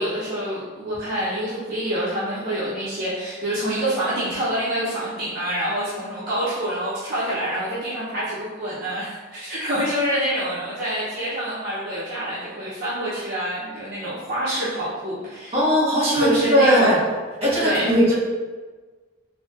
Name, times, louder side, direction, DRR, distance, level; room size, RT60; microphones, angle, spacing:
voice 1, 0.0-15.5 16.1-17.0 17.6-17.9, right 1 dB, 50° right, -11 dB, 0.8 m, -26 dB
voice 2, 15.5-17.0 17.4-18.1, equal, 30° right, -9 dB, 1.4 m, -18 dB
4.0 x 2.7 x 2.5 m, 1.3 s
head